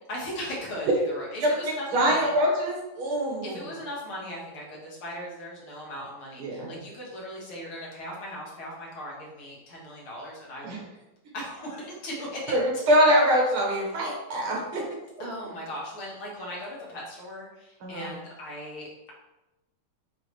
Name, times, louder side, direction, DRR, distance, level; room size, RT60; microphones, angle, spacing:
voice 1, 0.1-2.3 3.4-10.7 11.3-12.5 15.2-19.1, equal, 80° left, -4 dB, 2.6 m, -38 dB
voice 2, 1.4-3.5 6.4-6.7 10.6-10.8 12.5-14.8 17.8-18.1, equal, 85° right, -2 dB, 2.4 m, -24 dB
8.6 x 3.6 x 3.3 m, 0.98 s
omnidirectional pair, 2.3 m